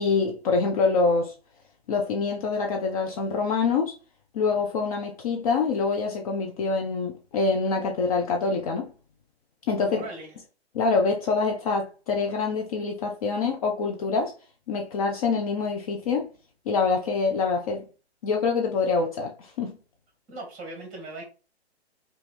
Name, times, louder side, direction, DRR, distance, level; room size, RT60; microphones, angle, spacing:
voice 1, 0.0-1.3 1.9-3.9 4.3-8.9 9.7-10.0 10.7-14.3 14.7-16.3 16.7-17.8 18.2-19.7, left 4 dB, 35° left, 0.5 m, -25 dB
voice 2, 9.8-10.4 20.3-21.2, right 2 dB, 20° right, 1.8 m, -39 dB
4.8 x 2.4 x 3.2 m
hypercardioid pair, 135°, 33 cm